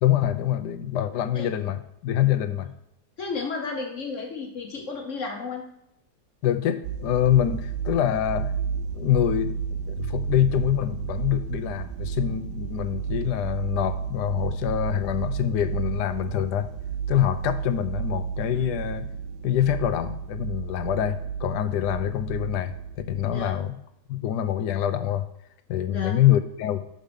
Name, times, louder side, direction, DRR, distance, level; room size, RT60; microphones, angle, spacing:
voice 1, 0.0-2.7 6.4-8.5 8.9-9.6 9.9-16.7 17.1-19.1 19.4-22.7 23.1-23.8 24.1-25.3 25.7-26.8, left 11 dB, 85° left, 10 dB, 1.2 m, -25 dB
voice 2, 3.2-5.6 23.2-23.5 25.9-26.1, left 4 dB, 55° left, 2 dB, 1.2 m, -33 dB
sound 1, 6.8-23.6, right 7 dB, 90° right, 1.2 m, -32 dB
6.4 x 5.4 x 5.2 m, 0.77 s
omnidirectional pair, 1.8 m